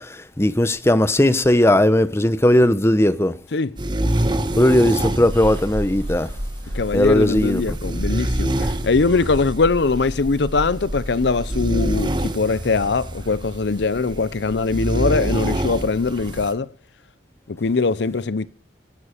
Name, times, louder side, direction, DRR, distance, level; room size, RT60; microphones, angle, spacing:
voice 1, 0.0-3.3 4.6-6.3 6.9-7.8, left 1 dB, 15° left, 0.8 m, -17 dB
sound 1, 3.8-16.5, right 1 dB, 25° right, 1.2 m, -27 dB
sound 2, 5.3-12.0, equal, 85° right, 3.4 m, -31 dB
voice 2, 6.7-16.7 17.5-18.5, left 4 dB, 70° left, 0.6 m, -21 dB
16.0 x 11.0 x 5.0 m
head